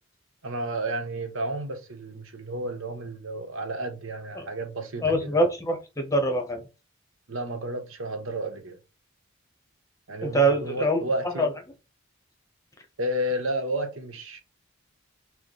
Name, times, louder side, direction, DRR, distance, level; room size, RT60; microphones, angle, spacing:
voice 1, 0.4-5.4 7.3-8.8 10.1-11.5 13.0-14.4, right 1 dB, 75° right, 1.0 m, -32 dB
voice 2, 5.0-6.6 10.2-11.5, right 1 dB, 15° left, 0.8 m, -24 dB
6.2 x 2.1 x 3.3 m
head